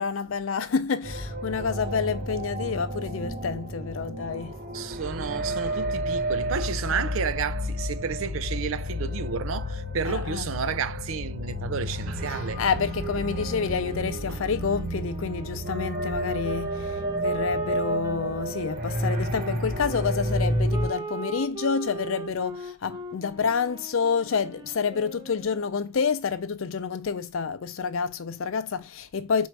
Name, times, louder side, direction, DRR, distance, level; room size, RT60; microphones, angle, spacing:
voice 1, 0.0-4.6 6.9-7.1 10.0-10.4 12.3-29.5, left 5 dB, 80° left, 0.5 m, -28 dB
sound 1, 1.0-20.9, equal, 45° right, 1.1 m, -31 dB
voice 2, 4.7-12.6 14.3-14.4, right 6 dB, 80° right, 0.5 m, -31 dB
Wind instrument woodwind instrument, 13.3-19.2 19.9-25.7, right 2 dB, 20° right, 0.6 m, -39 dB
4.4 x 2.6 x 4.5 m
head